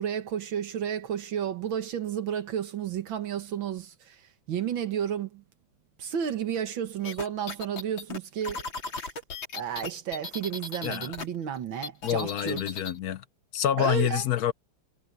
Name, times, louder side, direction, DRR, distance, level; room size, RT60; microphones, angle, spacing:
voice 1, 0.0-5.4 6.0-8.7 9.5-12.6 13.8-14.2, right 9 dB, 85° right, 2.1 m, -32 dB
sound 1, 7.0-11.3 11.5-13.0, left 4 dB, 85° left, 4.0 m, -37 dB
voice 2, 10.8-11.1 12.0-13.2 13.5-14.5, left 11 dB, 65° left, 1.0 m, -27 dB
omnidirectional pair, 2.1 m